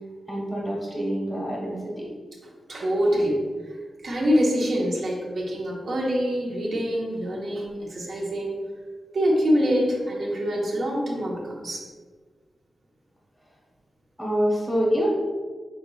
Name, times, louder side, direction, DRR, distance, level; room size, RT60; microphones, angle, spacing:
voice 1, 0.3-2.1 14.2-15.1, equal, 5° right, -5 dB, 0.9 m, -26 dB
voice 2, 2.7-3.8 4.0-8.6 9.1-11.9, equal, 60° right, -2 dB, 1.0 m, -25 dB
5.4 x 4.0 x 2.3 m, 1.5 s
wide cardioid pair, 120°, 0 cm